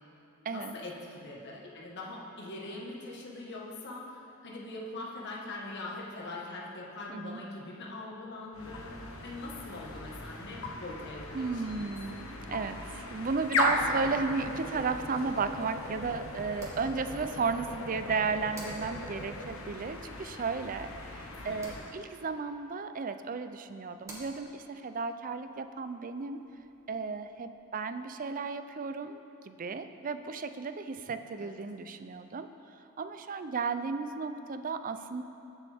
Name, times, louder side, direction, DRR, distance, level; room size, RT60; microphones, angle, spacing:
voice 1, 0.5-8.9 9.2-11.9 21.5-21.9 31.4-31.5, left 2 dB, 55° left, -3 dB, 1.5 m, -42 dB
voice 2, 7.1-7.4 11.3-26.5 26.9-32.5 33.0-35.2, right 4 dB, 40° right, 9 dB, 0.5 m, -34 dB
sound 1, 8.5-22.0, left 2 dB, 75° left, 1.2 m, -37 dB
sound 2, 14.5-27.3, right 1 dB, 15° right, 2.1 m, -55 dB
21.0 x 7.1 x 3.5 m, 2.8 s
head